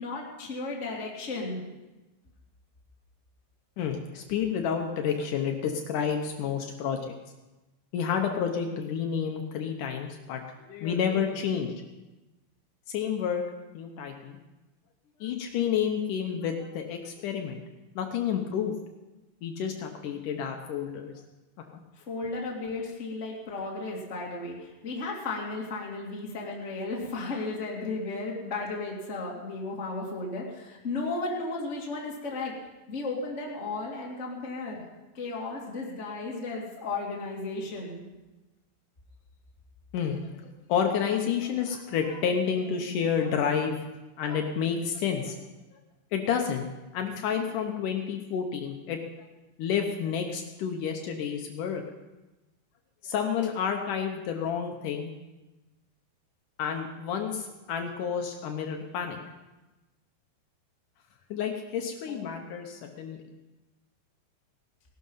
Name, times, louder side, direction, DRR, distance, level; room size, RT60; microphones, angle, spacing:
voice 1, 0.0-1.6 21.9-32.5 32.9-34.8 35.1-38.0 62.1-62.5, left 3 dB, 20° left, -3 dB, 2.1 m, -34 dB
voice 2, 3.8-7.0 7.9-10.4 10.7-11.7 12.9-13.4 13.7-14.4 15.2-17.6 18.0-18.7 19.4-21.1 39.9-40.3 40.7-43.8 44.2-45.4 46.1-46.7 46.9-49.3 49.6-51.8 53.0-55.1 56.6-59.2 61.3-63.2, left 7 dB, 85° left, 3 dB, 1.8 m, -30 dB
18.0 x 12.0 x 5.6 m, 1.1 s
omnidirectional pair, 5.1 m